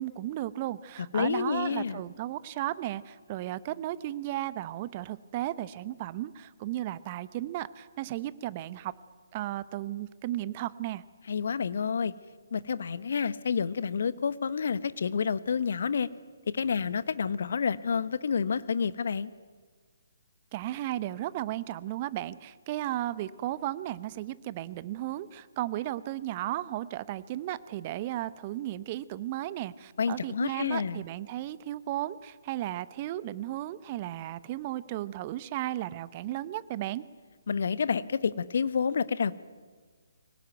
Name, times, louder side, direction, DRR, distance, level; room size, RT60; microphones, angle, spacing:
voice 1, 0.0-8.9 9.3-11.0 20.5-37.0, right 14 dB, 30° right, 17 dB, 0.8 m, -35 dB
voice 2, 1.1-2.0 11.3-12.1 12.5-16.1 16.5-19.3 30.0-31.0 37.5-39.3, left 6 dB, 55° left, 16 dB, 1.0 m, -29 dB
24.0 x 17.5 x 9.2 m, 1.5 s
figure-of-eight pair, 135°, 0 cm